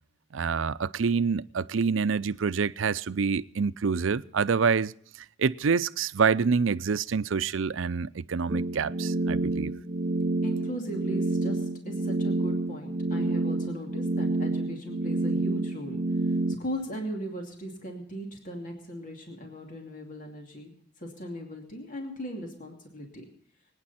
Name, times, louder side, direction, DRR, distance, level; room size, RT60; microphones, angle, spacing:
voice 1, 0.3-4.9 5.4-9.7, right 5 dB, 85° right, 0.5 m, -26 dB
sound 1, 8.5-16.6, right 2 dB, 40° right, 0.6 m, -28 dB
voice 2, 10.4-20.7 21.0-23.2, equal, 45° left, 2.7 m, -38 dB
25.5 x 9.7 x 4.2 m
head